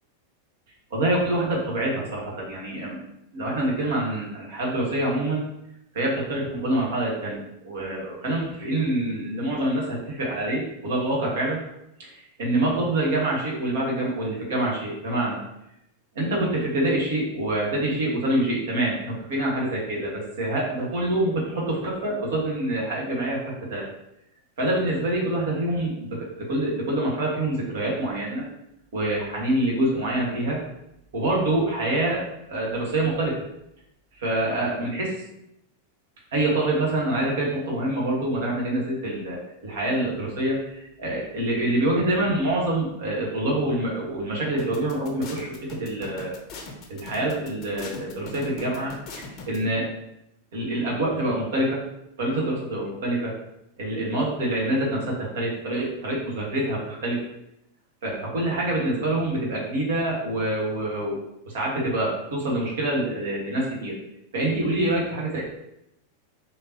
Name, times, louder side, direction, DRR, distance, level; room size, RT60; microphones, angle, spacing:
voice 1, 0.9-3.0 3.3-5.4 5.9-11.6 12.0-15.4 16.1-23.4 23.7-23.9 24.6-28.4 28.9-30.6 31.1-33.4 34.1-35.2 36.3-46.4 46.9-49.9 50.5-51.8 52.2-53.3 53.8-57.2 58.0-61.2 61.5-64.0 64.3-65.4, right 1 dB, 60° right, -3 dB, 1.3 m, -26 dB
sound 1, 44.6-49.6, left 3 dB, 35° left, 0.7 m, -40 dB
3.6 x 2.8 x 2.9 m, 0.83 s
figure-of-eight pair, 90°, 0 cm